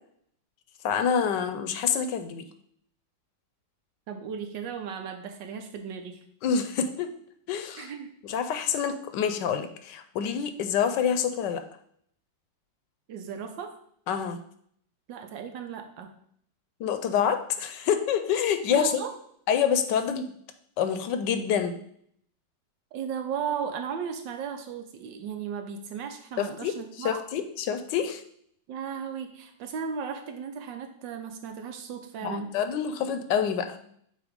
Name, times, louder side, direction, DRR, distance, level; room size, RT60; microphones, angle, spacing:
voice 1, 0.8-2.4 6.4-7.1 7.5-7.9 8.2-11.6 14.1-14.4 16.8-19.0 19.5-20.2 20.8-21.8 26.4-28.2 32.2-33.9, left 7 dB, 75° left, 8 dB, 1.2 m, -27 dB
voice 2, 4.1-6.2 7.8-8.1 13.1-13.7 15.1-16.1 18.7-19.1 22.9-27.2 28.7-32.5, right 7 dB, 80° right, 6 dB, 1.5 m, -35 dB
7.9 x 2.8 x 5.1 m, 0.66 s
omnidirectional pair, 2.0 m